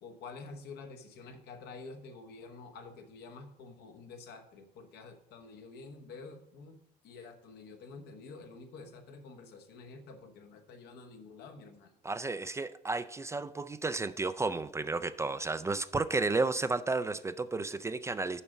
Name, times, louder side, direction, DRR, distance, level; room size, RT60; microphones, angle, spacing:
voice 1, 0.0-6.8 7.0-11.9, left 4 dB, 80° left, 1.2 m, -49 dB
voice 2, 12.0-18.4, right 3 dB, 15° right, 0.3 m, -32 dB
7.1 x 5.2 x 7.0 m
cardioid pair, 110°, 17 cm